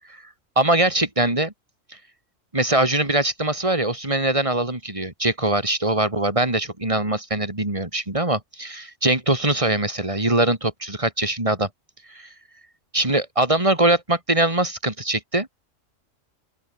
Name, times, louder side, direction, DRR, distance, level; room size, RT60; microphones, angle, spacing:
voice 1, 0.6-1.5 2.5-11.7 12.1-12.3 12.9-15.5, right 2 dB, 25° right, 3.7 m, -22 dB
open air
omnidirectional pair, 1.3 m